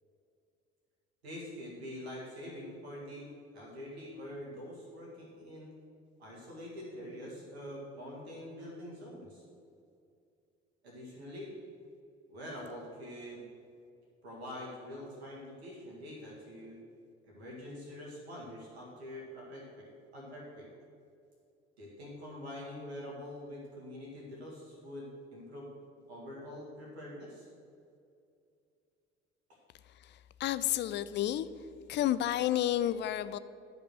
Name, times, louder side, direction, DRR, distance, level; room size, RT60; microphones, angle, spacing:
voice 1, 1.2-5.8 6.2-9.4 10.8-11.5 12.3-13.4 14.2-16.8 17.2-20.7 21.8-25.7 26.1-27.5, left 1 dB, 80° right, -4 dB, 1.8 m, -45 dB
voice 2, 29.9-31.5 31.9-33.4, left 12 dB, 35° left, 15 dB, 0.4 m, -31 dB
11.0 x 5.4 x 6.3 m, 2.5 s
figure-of-eight pair, 55°, 32 cm